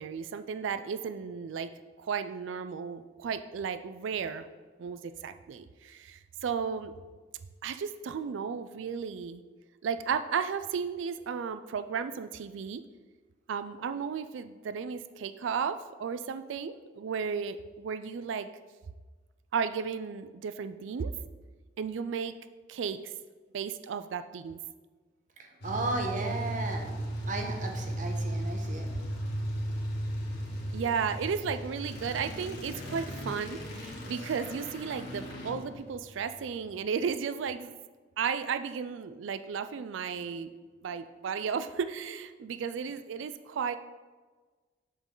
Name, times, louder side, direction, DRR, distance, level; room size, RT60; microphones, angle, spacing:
voice 1, 0.0-1.7 2.0-4.5 4.8-6.9 7.6-9.4 9.8-12.8 13.5-18.5 19.5-21.1 21.8-22.3 22.7-23.1 23.5-24.6 30.7-37.7 38.2-40.5 40.8-43.8, right 6 dB, 80° right, 11 dB, 0.4 m, -34 dB
voice 2, 25.4-26.9 27.3-28.9, right 2 dB, 40° right, 3 dB, 1.1 m, -34 dB
sound 1, 25.6-36.7, right 1 dB, 60° left, 2.1 m, -36 dB
8.1 x 7.5 x 3.8 m, 1.4 s
head